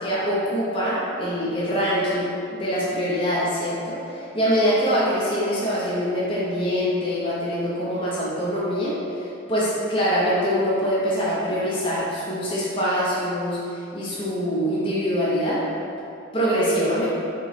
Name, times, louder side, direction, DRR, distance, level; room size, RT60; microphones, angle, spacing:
voice 1, 0.0-15.6 16.3-17.1, equal, 25° left, -8 dB, 0.6 m, -24 dB
5.2 x 2.1 x 4.0 m, 2.7 s
head